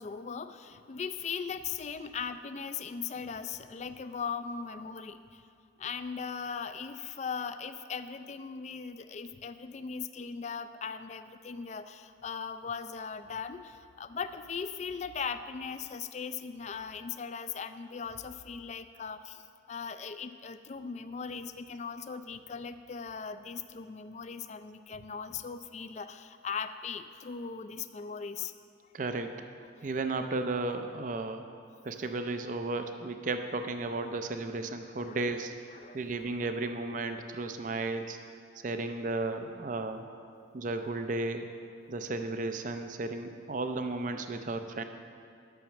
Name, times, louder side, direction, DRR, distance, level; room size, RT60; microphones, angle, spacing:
voice 1, 0.0-5.4 5.8-28.5 29.8-29.9 33.7-34.1 35.0-35.3 35.7-36.3, left 6 dB, 35° left, 11 dB, 0.3 m, -39 dB
voice 2, 28.9-29.5 29.8-31.4 31.8-38.2 38.6-40.0 40.5-41.5 41.9-44.8, right 3 dB, 40° right, 7 dB, 0.4 m, -34 dB
10.5 x 6.0 x 7.0 m, 2.4 s
head